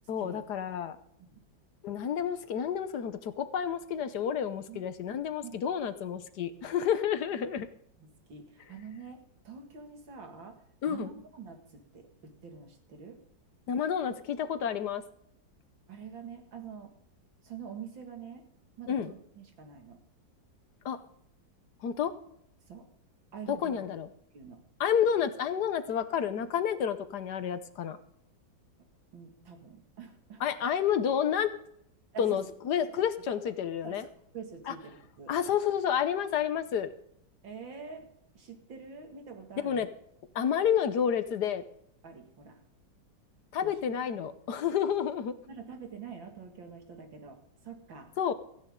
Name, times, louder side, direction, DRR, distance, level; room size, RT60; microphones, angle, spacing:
voice 1, 0.1-1.0 1.8-7.7 10.8-11.1 13.7-15.0 18.9-19.1 20.8-21.0 21.8-22.1 23.5-24.1 24.8-28.0 30.4-31.5 32.2-34.0 34.7-34.8 35.3-36.9 39.6-39.9 40.3-41.6 43.5-45.3 48.2-48.3, left 8 dB, 65° left, 12 dB, 1.4 m, -30 dB
voice 2, 8.0-13.2 15.9-16.9 17.4-18.5 18.8-20.0 22.7-22.9 23.3-23.9 24.3-24.6 29.1-30.4 32.1-32.4 32.9-33.0 33.4-33.5 33.8-35.3 37.4-38.1 38.3-39.8 42.0-42.6 43.6-43.8 45.5-48.1, right 6 dB, 85° right, 4 dB, 2.8 m, -46 dB
16.5 x 15.0 x 3.7 m, 0.72 s
omnidirectional pair, 2.0 m